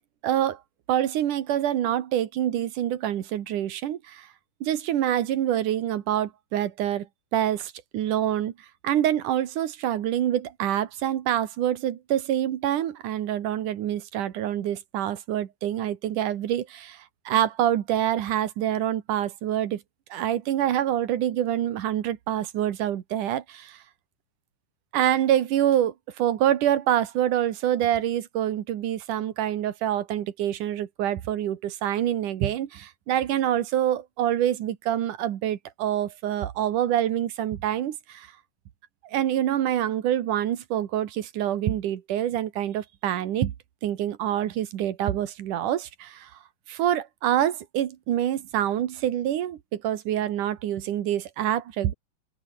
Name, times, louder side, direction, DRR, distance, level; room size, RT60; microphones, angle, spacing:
voice 1, 0.2-0.6 0.9-4.3 4.6-7.1 7.3-8.5 8.8-19.8 20.1-23.8 24.9-38.3 39.0-43.5 43.8-46.3 46.7-51.9, right 11 dB, 70° right, 2.9 m, -26 dB
open air
omnidirectional pair, 3.9 m